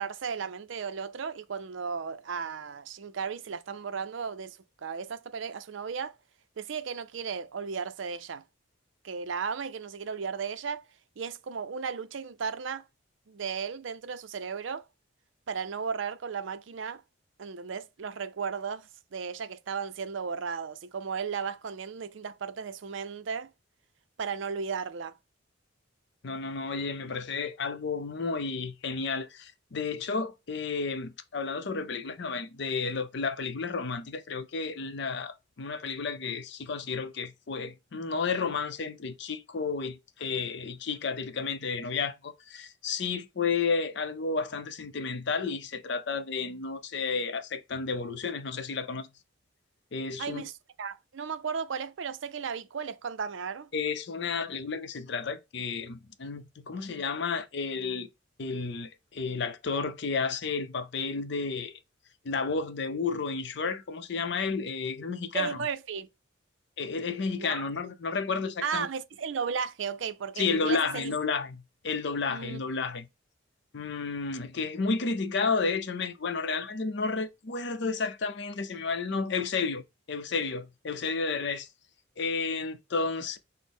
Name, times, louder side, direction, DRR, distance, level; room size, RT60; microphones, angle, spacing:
voice 1, 0.0-6.2 6.6-8.4 9.0-10.9 11.2-12.8 13.3-14.9 15.5-17.0 17.4-23.5 24.2-25.2 50.2-50.5 50.8-53.7 65.3-66.1 67.4-67.6 68.6-71.2 72.3-72.6, right 6 dB, 70° right, 0.5 m, -35 dB
voice 2, 26.2-49.1 49.9-50.4 53.7-58.1 58.4-61.8 62.2-65.7 66.8-68.9 70.4-73.1 73.7-81.7 82.2-83.4, left 4 dB, 60° left, 0.5 m, -32 dB
6.1 x 2.1 x 3.5 m
head